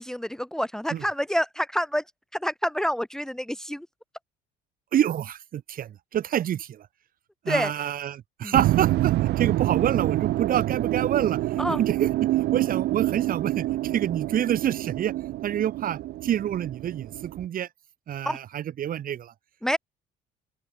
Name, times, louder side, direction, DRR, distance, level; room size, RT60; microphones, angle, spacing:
voice 1, 0.0-2.0 2.4-3.9 7.5-7.7 8.4-8.5 11.6-11.8 18.2-18.4 19.6-19.8, equal, 5° left, 1.6 m, -27 dB
voice 2, 4.9-6.9 7.4-11.4 11.8-15.1 15.4-17.7 18.1-19.3, right 10 dB, 55° right, 5.6 m, -27 dB
sound 1, 8.5-17.5, right 16 dB, 75° right, 2.9 m, -27 dB
open air
cardioid pair, 110°, 17 cm